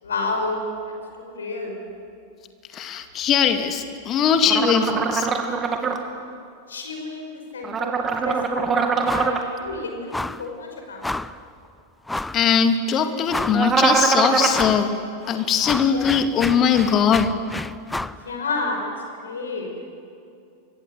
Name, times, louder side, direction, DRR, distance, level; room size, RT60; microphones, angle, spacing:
voice 1, 0.0-1.8 6.7-11.2 15.8-16.0 18.2-18.9 19.2-19.7, left 3 dB, 70° left, 3 dB, 5.4 m, -30 dB
voice 2, 2.7-5.3 12.3-15.0 15.3-17.3, left 7 dB, 30° left, 6 dB, 2.5 m, -20 dB
sound 1, 4.5-6.0 7.6-9.4 13.5-14.6, right 5 dB, 20° right, 2.7 m, -22 dB
sound 2, 9.1-9.4 9.7-9.8 10.1-10.5 11.0-11.4 12.1-12.4 12.9-13.0 13.3-13.8 14.5-14.9 15.2-18.2, left 2 dB, 5° left, 0.7 m, -30 dB
29.5 x 25.0 x 8.0 m, 2.4 s
figure-of-eight pair, 90°, 0 cm